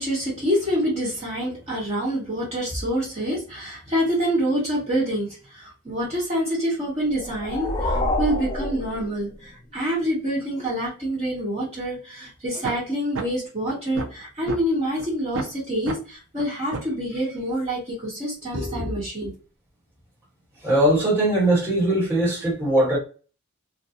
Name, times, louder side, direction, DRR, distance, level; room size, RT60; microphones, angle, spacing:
voice 1, 0.0-19.3, equal, 30° right, 1.1 m, -26 dB
sound 1, 7.0-9.6, left 1 dB, 25° left, 0.4 m, -27 dB
sound 2, 12.6-12.7 13.1-13.2 13.7-14.6 15.0-15.1 15.3-15.5 15.9-16.0 16.4-16.5 16.7-16.9, right 3 dB, 60° right, 0.5 m, -30 dB
voice 2, 20.6-23.0, right 1 dB, 10° right, 1.2 m, -20 dB
2.4 x 2.2 x 2.8 m
head